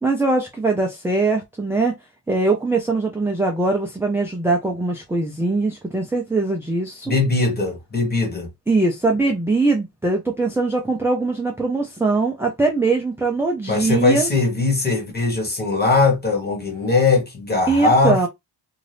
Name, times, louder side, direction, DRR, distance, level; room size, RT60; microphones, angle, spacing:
voice 1, 0.0-2.0 2.3-7.2 8.7-14.3 17.7-18.3, right 3 dB, 5° right, 0.5 m, -21 dB
voice 2, 7.1-8.5 13.7-18.3, left 3 dB, 20° left, 1.3 m, -20 dB
2.7 x 2.4 x 3.3 m
wide cardioid pair, 135°, 44 cm